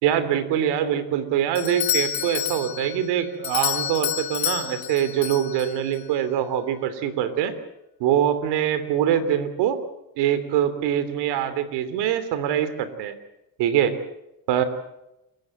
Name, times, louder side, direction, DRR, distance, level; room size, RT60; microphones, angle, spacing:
voice 1, 0.0-7.5 8.0-9.8 10.2-13.1 13.6-14.0 14.5-14.6, right 10 dB, 85° right, 12 dB, 3.1 m, -23 dB
Doorbell, 1.6-6.0, left 12 dB, 60° left, 1.9 m, -29 dB
29.0 x 15.5 x 7.9 m, 0.88 s
cardioid pair, 100°, 40 cm